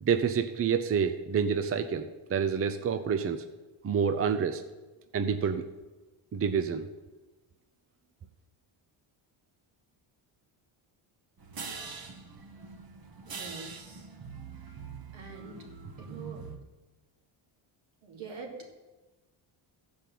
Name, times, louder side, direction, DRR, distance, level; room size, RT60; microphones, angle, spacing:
voice 1, 0.0-3.4 3.8-4.6 5.1-5.6 6.3-6.9, right 6 dB, 30° right, 8 dB, 0.6 m, -28 dB
sound 1, 11.4-16.6, right 5 dB, 45° right, 1.4 m, -43 dB
voice 2, 13.2-14.1 15.1-15.6 16.0-16.4 18.0-18.7, right 4 dB, 70° right, 1 dB, 2.7 m, -44 dB
14.5 x 5.2 x 7.6 m, 1.2 s
cardioid pair, 110°, 50 cm